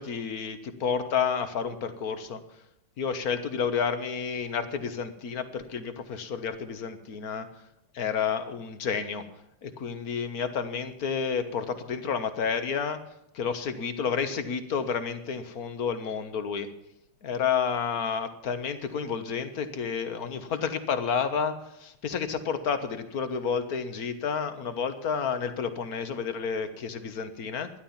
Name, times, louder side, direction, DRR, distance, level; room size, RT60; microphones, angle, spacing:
voice 1, 0.0-2.4 3.0-7.5 7.9-9.3 9.6-13.0 13.3-16.7 17.2-27.7, left 6 dB, 50° left, 10 dB, 1.5 m, -30 dB
13.0 x 11.0 x 7.2 m, 0.82 s
omnidirectional pair, 2.3 m